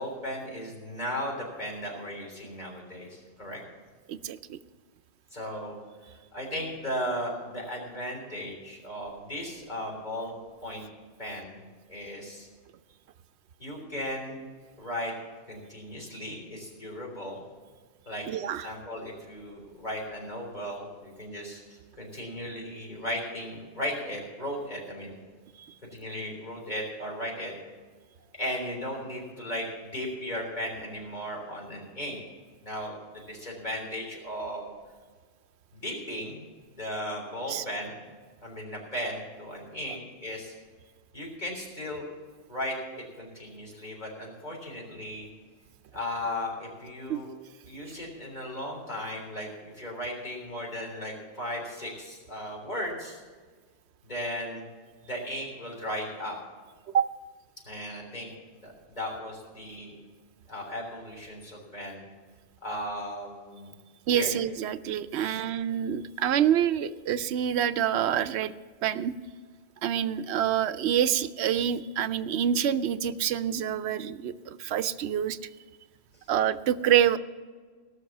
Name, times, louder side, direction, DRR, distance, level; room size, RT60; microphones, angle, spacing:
voice 1, 0.0-3.6 5.3-5.8 6.0-10.3 10.6-10.8 11.2-11.6 11.9-12.5 13.6-14.4 14.8-15.1 15.5-17.4 18.1-18.3 18.6-25.2 25.9-27.5 28.4-32.2 32.6-34.7 35.7-36.4 36.7-38.0 38.4-40.5 41.1-42.1 42.5-45.3 45.9-47.3 47.6-53.2 54.0-54.6 55.0-56.4 57.7-58.3 58.6-60.0 60.5-62.0 62.6-63.7 64.1-64.3 65.1-65.4, equal, 45° left, -1 dB, 3.7 m, -36 dB
voice 2, 4.1-4.6 18.3-18.7 25.6-25.7 37.5-37.6 47.1-47.2 56.9-57.1 64.1-68.5 68.8-69.1 69.8-75.4 76.3-77.2, right 9 dB, 90° right, 13 dB, 0.9 m, -26 dB
17.5 x 6.6 x 7.2 m, 1.5 s
omnidirectional pair, 1.1 m